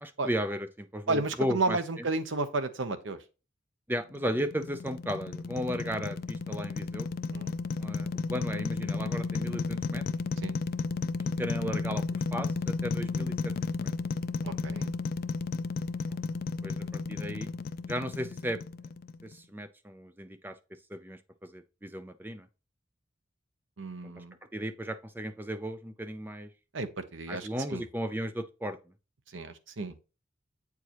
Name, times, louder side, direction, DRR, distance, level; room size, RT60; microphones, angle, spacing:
voice 1, 0.0-1.8 3.9-7.1 7.8-10.0 11.4-13.9 16.6-17.5 17.9-18.6 19.2-20.6 20.9-22.5 24.0-24.2 24.5-26.5 27.3-28.8, equal, 10° right, 0.5 m, -35 dB
voice 2, 1.1-3.2 5.7-5.8 7.3-7.5 10.4-10.5 14.4-14.9 23.8-24.3 26.7-27.8 29.3-30.0, right 3 dB, 75° right, 0.8 m, -32 dB
sound 1, 4.1-19.3, left 4 dB, 50° left, 0.3 m, -33 dB
8.2 x 4.7 x 3.0 m
head